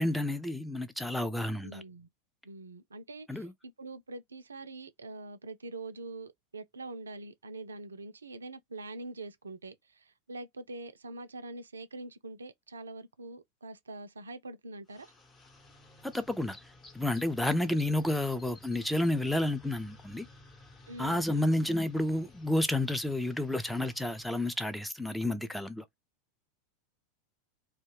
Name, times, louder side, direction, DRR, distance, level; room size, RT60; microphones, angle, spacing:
voice 1, 0.0-1.8 3.3-3.5 16.0-16.6 16.9-20.3 21.0-25.8, left 1 dB, 5° left, 0.4 m, -30 dB
voice 2, 1.6-2.1 2.4-15.1 20.9-21.6, right 2 dB, 80° right, 0.4 m, -44 dB
sound 1, 14.9-24.8, left 2 dB, 25° left, 0.9 m, -55 dB
2.3 x 2.1 x 3.1 m
figure-of-eight pair, 85°, 0 cm